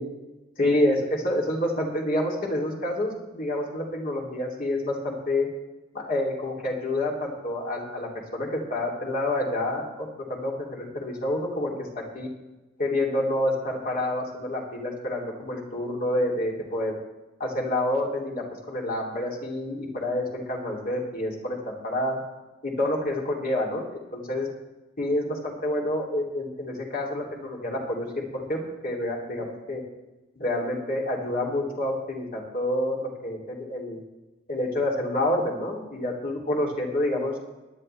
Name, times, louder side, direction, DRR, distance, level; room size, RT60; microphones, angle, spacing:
voice 1, 0.6-5.5 5.9-12.3 12.8-17.0 17.4-22.2 22.6-23.9 24.1-24.5 25.0-29.8 30.4-34.0 34.5-37.3, left 1 dB, 50° left, -3 dB, 2.9 m, -28 dB
18.0 x 11.5 x 3.4 m, 1.1 s
head